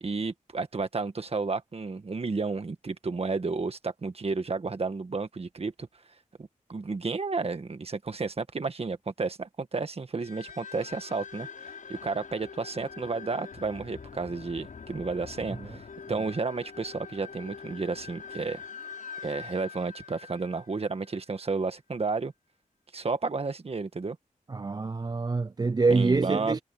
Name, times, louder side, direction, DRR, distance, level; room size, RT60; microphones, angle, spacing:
voice 1, 0.0-5.9 6.4-18.6 19.2-22.3 22.9-24.2 25.9-26.6, right 4 dB, 45° right, 1.6 m, -32 dB
sound 1, 10.2-21.4, left 6 dB, 80° left, 6.3 m, -44 dB
voice 2, 24.5-26.6, right 3 dB, 30° right, 0.4 m, -26 dB
wide cardioid pair, 110°, 14 cm